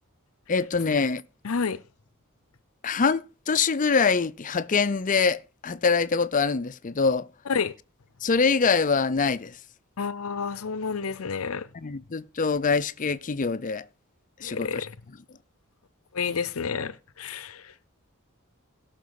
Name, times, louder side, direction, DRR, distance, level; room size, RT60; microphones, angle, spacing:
voice 1, 0.5-1.2 2.8-7.3 8.2-9.6 11.7-13.9 14.4-14.9, left 5 dB, 40° left, 0.6 m, -24 dB
voice 2, 1.4-1.8 7.5-7.7 10.0-11.7 14.4-15.0 16.1-17.7, left 5 dB, 80° left, 0.7 m, -30 dB
17.0 x 6.0 x 4.8 m
head